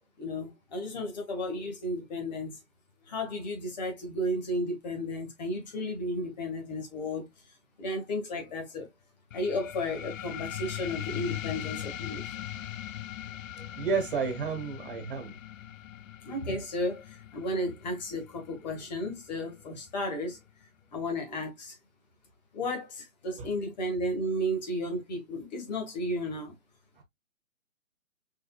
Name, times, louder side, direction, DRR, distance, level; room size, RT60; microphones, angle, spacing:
voice 1, 0.2-2.6 3.1-7.3 7.8-8.9 9.3-12.2 16.2-20.4 20.9-21.8 22.5-26.5, left 1 dB, 30° left, 1.9 m, -33 dB
sound 1, 9.3-20.4, left 12 dB, 65° left, 0.5 m, -40 dB
voice 2, 13.6-15.3 23.3-23.5, right 5 dB, 40° right, 1.6 m, -31 dB
4.9 x 4.4 x 2.4 m
hypercardioid pair, 160°, 42 cm